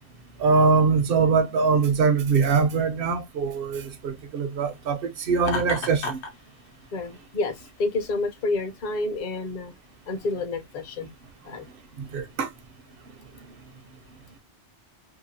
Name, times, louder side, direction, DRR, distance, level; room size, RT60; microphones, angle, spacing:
voice 1, 0.4-6.2 12.0-12.5, right 5 dB, 65° right, 0.7 m, -22 dB
Laughter, 5.4-6.3, left 3 dB, 85° left, 1.0 m, -31 dB
voice 2, 6.9-9.7 10.1-11.1 11.4-11.7, left 3 dB, 50° left, 0.7 m, -29 dB
2.8 x 2.3 x 2.6 m
omnidirectional pair, 1.1 m